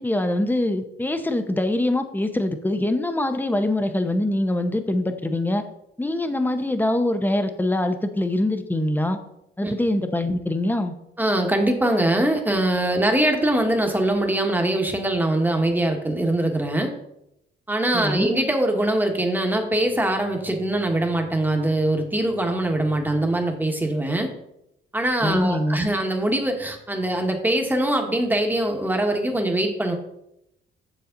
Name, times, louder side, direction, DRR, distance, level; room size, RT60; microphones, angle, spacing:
voice 1, 0.0-5.6 6.0-9.2 9.6-10.9 17.9-18.3 25.2-25.8, left 1 dB, 10° left, 8 dB, 0.9 m, -23 dB
voice 2, 11.2-16.9 17.7-24.3 24.9-29.9, right 1 dB, 10° right, 3 dB, 1.4 m, -22 dB
7.2 x 6.9 x 3.9 m, 0.82 s
cardioid pair, 90°, 20 cm